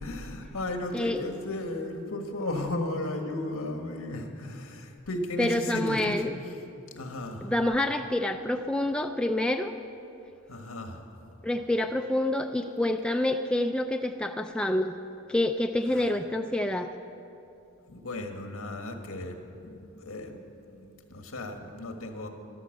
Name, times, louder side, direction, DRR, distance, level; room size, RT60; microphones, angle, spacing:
voice 1, 0.0-6.1 6.9-7.5 10.5-11.0 15.9-16.1 17.9-22.3, left 1 dB, 75° left, 4 dB, 1.6 m, -35 dB
voice 2, 0.9-1.2 5.4-6.3 7.4-9.7 11.4-14.9 15.3-16.9, left 1 dB, 5° left, 5 dB, 0.3 m, -27 dB
13.5 x 12.5 x 6.5 m, 2.8 s
head